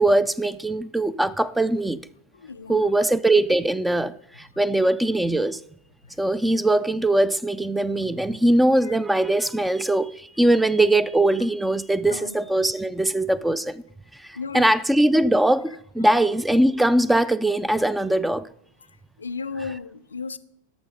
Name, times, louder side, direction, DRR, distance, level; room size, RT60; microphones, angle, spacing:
voice 1, 0.0-2.0 2.7-5.6 6.2-13.8 14.1-18.5, right 1 dB, 5° right, 0.3 m, -21 dB
voice 2, 2.4-2.9 8.9-9.0 12.1-12.7 14.4-14.8 19.2-20.4, left 4 dB, 75° left, 0.4 m, -35 dB
12.0 x 6.1 x 5.0 m
figure-of-eight pair, 90°, 0 cm